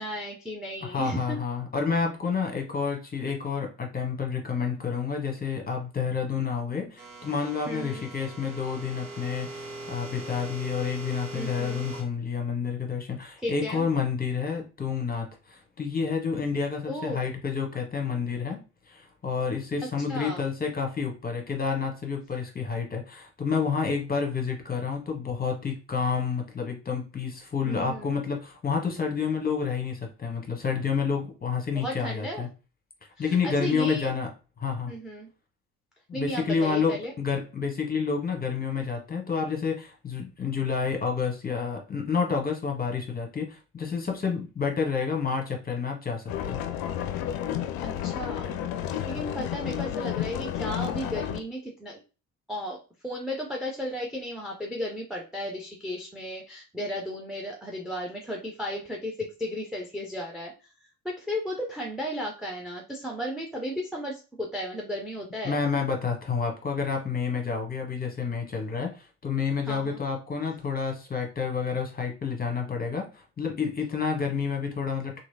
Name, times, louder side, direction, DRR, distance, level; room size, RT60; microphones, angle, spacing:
voice 1, 0.0-1.4 7.7-8.0 11.3-11.8 13.4-13.9 16.9-17.3 20.1-20.4 27.6-28.2 31.7-32.4 33.2-34.1 34.9-35.3 36.1-37.1 47.8-48.6 48.8-52.0 52.5-60.5 61.0-65.6 69.7-70.0, equal, ahead, 0 dB, 0.6 m, -34 dB
voice 2, 0.8-18.6 18.9-32.5 33.2-34.3 34.6-34.9 36.1-46.6 65.4-75.2, left 5 dB, 20° left, 2 dB, 0.9 m, -29 dB
sound 1, 7.0-12.0, right 2 dB, 75° right, 1.1 m, -41 dB
sound 2, 46.3-51.4, left 10 dB, 50° left, 0.5 m, -31 dB
3.0 x 2.7 x 2.6 m, 0.32 s
figure-of-eight pair, 45°, 48 cm